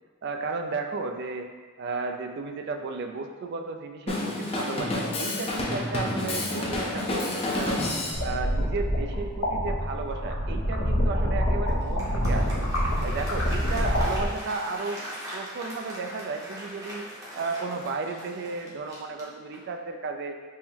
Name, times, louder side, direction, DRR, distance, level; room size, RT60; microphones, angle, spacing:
voice 1, 0.2-1.5 1.8-7.8 8.2-12.6 13.0-15.0 15.3-17.1 17.3-20.4, right 4 dB, 55° right, 5 dB, 0.3 m, -34 dB
Drum kit, 4.1-8.2, left 2 dB, 30° left, 0.5 m, -29 dB
sound 1, 8.1-14.3, equal, 70° left, 0.7 m, -26 dB
Applause, 11.7-19.8, equal, 15° right, 0.7 m, -41 dB
3.6 x 2.0 x 4.3 m, 1.4 s
head